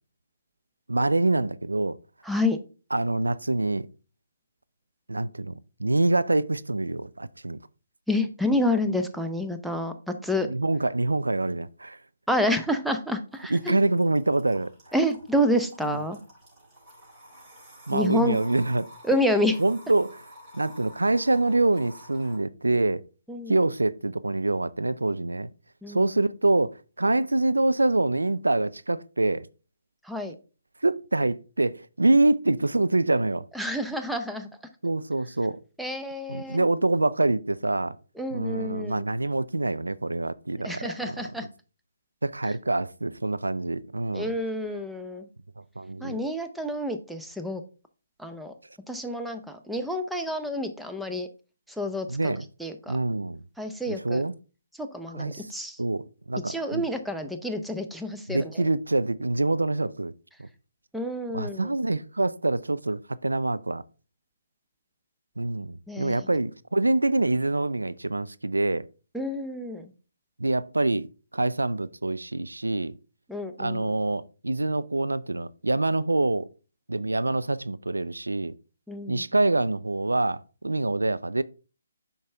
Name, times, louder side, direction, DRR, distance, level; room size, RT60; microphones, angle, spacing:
voice 1, 0.9-2.0 2.9-3.9 5.1-5.5 5.8-7.6 10.4-12.0 13.5-14.7 15.9-16.0 17.9-18.9 19.6-20.2 20.5-23.0 23.5-25.5 25.9-29.5 30.8-33.4 34.8-35.6 36.3-37.9 38.3-41.5 42.2-44.4 45.8-46.2 52.1-52.4 52.9-53.4 53.9-54.3 55.1-55.5 55.8-56.9 58.3-60.1 60.4-60.5 61.3-63.8 65.4-68.9 70.4-71.1 71.3-73.0 73.6-76.5 76.9-78.5 79.1-81.4, right 2 dB, 90° right, 0.4 m, -25 dB
voice 2, 2.3-2.6 8.1-9.9 10.2-10.5 12.3-13.8 14.9-16.2 17.9-18.4 19.1-19.6 23.3-23.6 25.8-26.0 30.1-30.3 33.5-34.5 35.8-36.6 38.2-39.0 40.6-41.4 44.1-45.3 46.0-47.6 48.2-48.5 48.9-49.4 49.7-51.3 51.8-52.3 52.6-53.0 53.6-54.2 54.8-55.8 56.5-58.5 60.9-61.7 65.9-66.2 69.1-69.9 73.3-73.9 78.9-79.2, left 1 dB, ahead, 0.7 m, -28 dB
sound 1, 13.3-22.4, equal, 20° right, 4.0 m, -50 dB
8.5 x 5.6 x 3.4 m
figure-of-eight pair, 145°, 0 cm